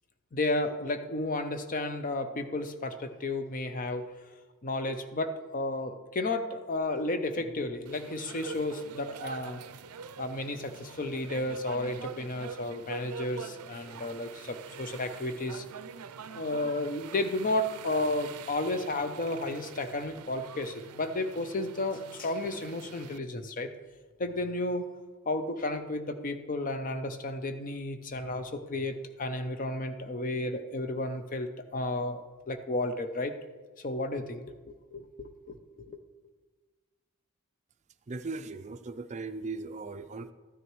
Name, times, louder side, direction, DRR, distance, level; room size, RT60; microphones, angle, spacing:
voice 1, 0.3-4.1 4.6-9.6 10.2-15.6 16.3-23.7 24.2-24.9 25.3-33.4 33.8-36.0, left 2 dB, 40° left, 8 dB, 0.6 m, -33 dB
sound 1, 7.9-23.2, right 6 dB, 90° right, 0.5 m, -45 dB
voice 2, 38.1-40.3, right 3 dB, 30° right, 10 dB, 0.4 m, -38 dB
13.5 x 9.6 x 3.1 m, 1.3 s
head